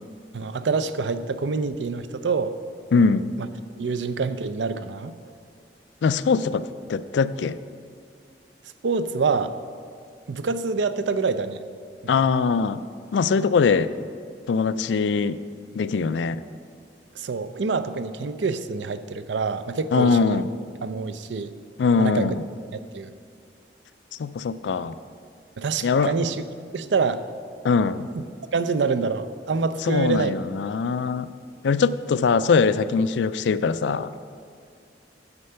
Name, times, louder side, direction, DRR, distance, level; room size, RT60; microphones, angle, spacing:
voice 1, 0.3-2.5 3.4-3.5 3.8-5.1 8.8-9.5 10.3-11.6 12.0-12.1 17.2-20.4 20.8-21.5 22.0-22.3 22.7-23.1 25.6-26.4 26.7-27.2 28.2-28.3 28.5-30.4, right 4 dB, 85° right, 12 dB, 0.5 m, -26 dB
voice 2, 2.9-3.3 6.0-7.6 12.1-12.8 13.1-13.9 14.5-15.4 15.7-16.4 19.9-20.5 21.8-22.4 24.2-25.0 25.8-26.1 27.6-28.1 29.9-31.3 31.6-34.1, left 5 dB, 80° left, 14 dB, 0.4 m, -22 dB
9.6 x 7.8 x 5.6 m, 2.2 s
head